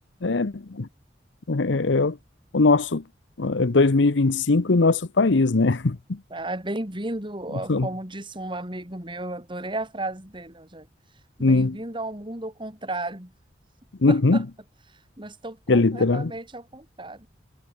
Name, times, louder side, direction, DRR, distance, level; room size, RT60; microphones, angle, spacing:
voice 1, 0.2-0.9 1.5-2.2 2.5-3.0 3.4-6.2 7.5-7.9 11.4-11.8 14.0-14.5 15.7-16.3, left 3 dB, 85° left, 0.8 m, -21 dB
voice 2, 6.3-10.9 11.4-13.3 14.1-14.4 15.2-17.3, right 2 dB, 25° right, 3.9 m, -34 dB
head